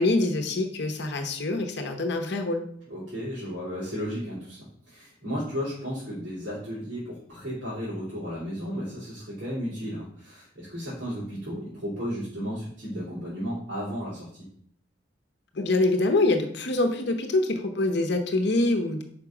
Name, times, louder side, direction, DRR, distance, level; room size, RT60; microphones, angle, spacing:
voice 1, 0.0-2.6 15.5-19.0, left 2 dB, 60° left, 5 dB, 0.8 m, -25 dB
voice 2, 2.9-14.5, equal, 65° right, -9 dB, 3.2 m, -34 dB
5.3 x 5.1 x 5.9 m, 0.65 s
head